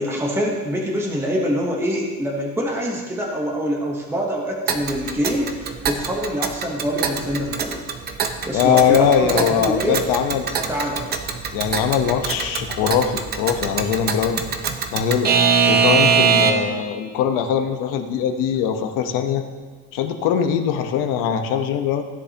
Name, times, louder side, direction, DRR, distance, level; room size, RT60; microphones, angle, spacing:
voice 1, 0.0-7.8 8.5-10.0 10.7-11.1, equal, 5° right, -1 dB, 1.1 m, -25 dB
Alarm / Clock, 4.7-16.8, right 6 dB, 30° right, 0.6 m, -23 dB
voice 2, 8.5-10.6 11.5-14.4 14.9-15.3 15.7-19.4 19.9-22.0, left 8 dB, 75° left, 6 dB, 1.1 m, -21 dB
16.0 x 10.0 x 2.9 m, 1.4 s
cardioid pair, 175°, 33 cm